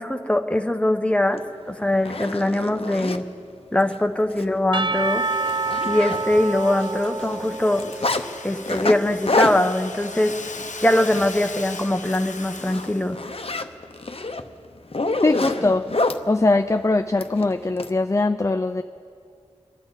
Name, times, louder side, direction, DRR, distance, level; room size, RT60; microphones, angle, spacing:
voice 1, 0.0-3.2 3.7-5.2 5.9-7.8 8.4-10.3 10.8-13.2, left 1 dB, 10° left, 6 dB, 1.0 m, -22 dB
Zipper (clothing), 1.4-1.5 1.9-3.2 3.8-4.0 4.3-4.4 4.8-4.9 5.2-6.6 6.8-8.2 8.7-11.6 11.9-12.2 12.6-16.2 17.2-17.9, left 2 dB, 50° left, 0.8 m, -27 dB
Percussion / Church bell, 4.7-8.7, right 3 dB, 40° right, 0.5 m, -28 dB
Domestic sounds home sounds, 4.9-13.2, left 4 dB, 85° left, 0.8 m, -39 dB
voice 2, 15.2-15.8 16.3-18.8, left 2 dB, 25° left, 8 dB, 0.5 m, -21 dB
27.0 x 11.5 x 4.0 m, 2.3 s
wide cardioid pair, 55°, 12 cm